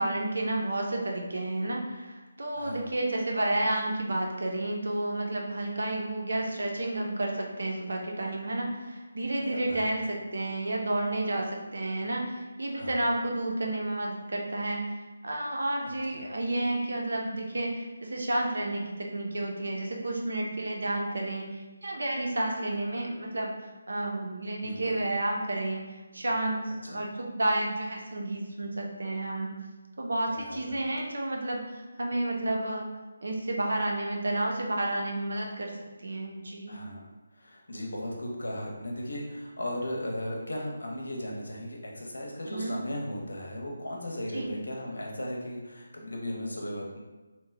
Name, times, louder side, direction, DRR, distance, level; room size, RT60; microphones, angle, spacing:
voice 1, 0.0-26.6 26.9-29.5 30.0-32.9 33.2-35.7 36.0-36.8 42.4-42.8 44.3-44.5, right 1 dB, 75° right, -1 dB, 0.7 m, -31 dB
voice 2, 2.5-2.8 9.4-9.9 12.7-13.1 16.1-16.2 24.6-25.0 26.9-27.0 30.3-30.9 36.7-37.0 37.4-47.0, left 1 dB, 85° left, -1 dB, 0.8 m, -36 dB
3.0 x 2.2 x 3.3 m, 1.2 s
figure-of-eight pair, 160°, 0 cm